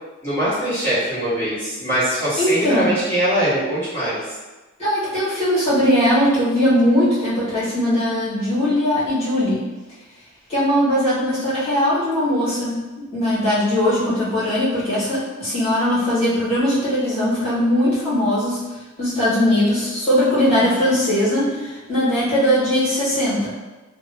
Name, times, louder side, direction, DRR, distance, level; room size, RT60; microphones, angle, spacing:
voice 1, 0.2-4.2, right 1 dB, 10° left, -14 dB, 1.4 m, -22 dB
voice 2, 2.4-2.9 4.8-9.6 10.5-12.8 13.1-18.6 19.0-23.5, left 1 dB, 30° left, -12 dB, 1.5 m, -19 dB
2.9 x 2.1 x 2.7 m, 1.2 s
head